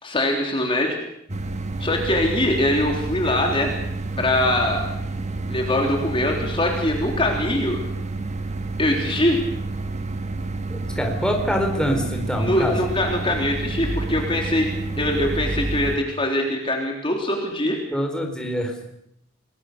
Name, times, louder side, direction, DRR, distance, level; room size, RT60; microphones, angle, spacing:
voice 1, 0.0-1.0 1.8-3.7 4.2-4.9 5.5-7.8 8.8-9.4 12.4-14.7 15.0-17.8, left 1 dB, 25° left, 1 dB, 3.5 m, -22 dB
sound 1, 1.3-16.0, right 2 dB, 35° right, 1.6 m, -29 dB
voice 2, 10.7-12.8 17.9-18.7, equal, 5° left, 2 dB, 4.2 m, -24 dB
28.5 x 21.0 x 6.7 m, 0.76 s
head